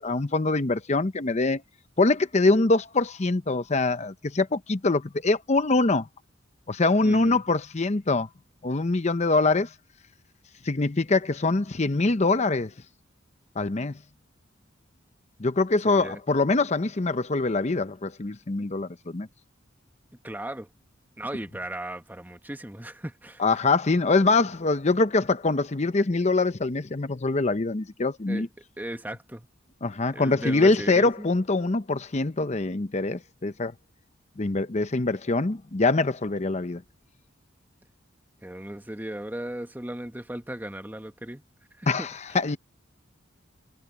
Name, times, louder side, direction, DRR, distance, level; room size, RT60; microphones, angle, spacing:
voice 1, 0.0-1.6 2.0-6.1 6.7-8.3 8.6-9.7 10.6-12.7 13.6-13.9 15.4-19.3 23.4-28.5 29.8-33.7 34.4-36.8 41.9-42.6, left 3 dB, 35° left, 0.7 m, -24 dB
voice 2, 7.0-7.4 15.9-16.2 20.2-20.7 21.2-23.4 28.3-28.5 28.8-29.5 30.1-31.3 38.4-41.4 41.8-42.1, right 1 dB, 10° right, 1.1 m, -36 dB
head